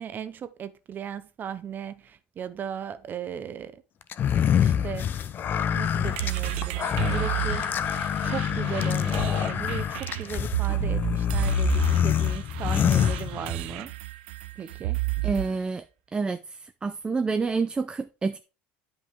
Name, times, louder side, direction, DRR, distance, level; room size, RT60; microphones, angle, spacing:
voice 1, 0.0-3.8 4.6-5.1 5.7-7.7 8.2-13.9 14.6-15.0, right 8 dB, 35° right, 0.8 m, -37 dB
sound 1, 4.1-13.8, left 9 dB, 40° left, 0.6 m, -26 dB
sound 2, 6.1-15.6, right 20 dB, 85° right, 0.6 m, -31 dB
voice 2, 15.2-15.8 16.1-16.4 16.8-18.4, right 4 dB, 15° right, 0.4 m, -27 dB
9.2 x 5.4 x 3.6 m
supercardioid pair, 115°, 5 cm